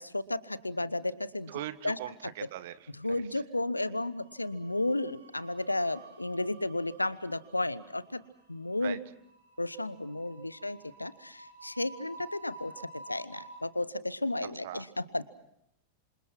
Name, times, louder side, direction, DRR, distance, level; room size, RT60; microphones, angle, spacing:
voice 1, 0.0-2.0 3.0-8.2 8.5-9.0 9.6-15.3, left 2 dB, 85° left, 18 dB, 1.0 m, -33 dB
voice 2, 1.5-3.4 8.8-9.0 14.6-14.9, right 14 dB, 55° right, 15 dB, 1.4 m, -41 dB
sound 1, 1.5-2.3 2.6-2.9 4.0-13.6, right 2 dB, 70° right, 5.6 m, -52 dB
27.0 x 26.5 x 6.1 m, 0.78 s
figure-of-eight pair, 90°, 0 cm